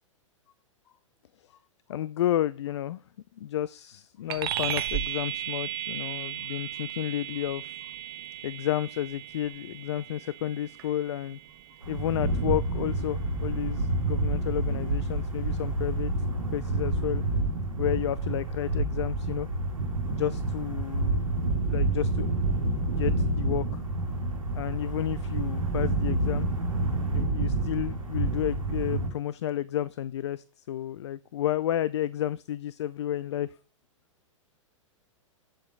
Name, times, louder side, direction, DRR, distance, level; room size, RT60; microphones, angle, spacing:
voice 1, 1.9-3.0 3.4-7.7 8.4-11.4 11.9-16.1 16.5-17.2 17.8-19.5 20.1-21.2 21.7-22.3 22.6-23.8 24.6-26.5 27.1-33.5, left 12 dB, 55° left, 0.5 m, -31 dB
sound 1, 4.3-14.1, right 12 dB, 45° right, 1.0 m, -36 dB
sound 2, 11.8-29.1, right 2 dB, 80° right, 1.7 m, -28 dB
8.9 x 7.2 x 3.7 m
figure-of-eight pair, 105°, 17 cm